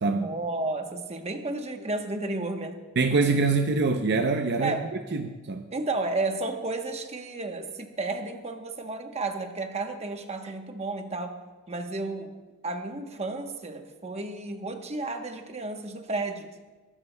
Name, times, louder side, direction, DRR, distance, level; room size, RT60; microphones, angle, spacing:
voice 1, 0.1-2.8 4.6-4.9 5.7-11.4 11.7-12.3 12.6-16.5, right 2 dB, 30° right, 5 dB, 1.0 m, -32 dB
voice 2, 3.0-4.7 5.1-5.6, right 3 dB, 55° right, 5 dB, 0.6 m, -24 dB
21.0 x 12.5 x 2.2 m, 1.3 s
head